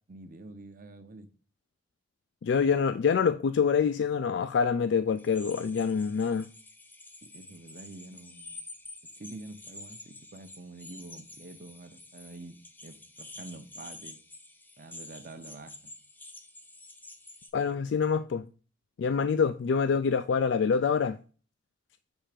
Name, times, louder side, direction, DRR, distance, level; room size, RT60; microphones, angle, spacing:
voice 1, 0.1-1.3 7.3-8.6 9.0-14.2 14.8-16.0, right 2 dB, 45° right, 0.7 m, -47 dB
voice 2, 2.4-6.5 17.5-18.5 19.0-21.2, left 6 dB, 65° left, 0.3 m, -26 dB
sound 1, 5.2-17.5, left 2 dB, 10° left, 0.7 m, -49 dB
7.2 x 3.3 x 5.0 m
head